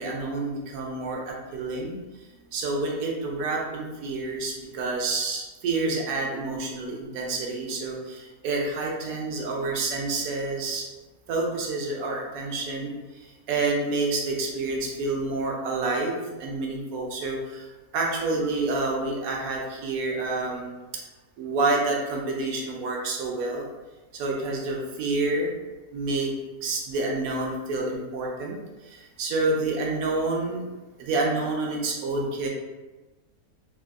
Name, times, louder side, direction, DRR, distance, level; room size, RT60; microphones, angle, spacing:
voice 1, 0.0-2.0 2.5-10.9 11.3-20.8 21.4-23.7 24.1-25.5 25.9-26.3 26.6-30.6 31.0-32.5, right 3 dB, 75° right, -1 dB, 1.0 m, -28 dB
3.5 x 2.2 x 2.3 m, 1.2 s
omnidirectional pair, 1.6 m